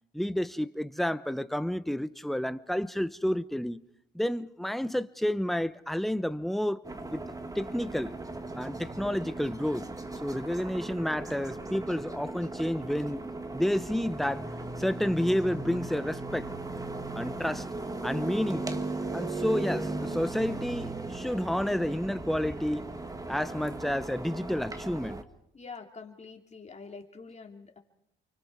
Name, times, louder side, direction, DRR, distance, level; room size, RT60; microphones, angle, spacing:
voice 1, 0.1-3.8 4.1-6.8 7.1-7.2 7.5-8.1 8.6-9.9 10.2-13.2 13.5-14.5 14.8-16.5 17.1-17.7 18.0-18.6 19.1-22.9 23.3-25.2, equal, ahead, 0.9 m, -30 dB
sound 1, 6.8-25.2, right 2 dB, 15° right, 1.7 m, -37 dB
voice 2, 25.5-27.8, left 4 dB, 35° left, 3.1 m, -46 dB
29.5 x 24.0 x 4.9 m
cardioid pair, 90°, 20 cm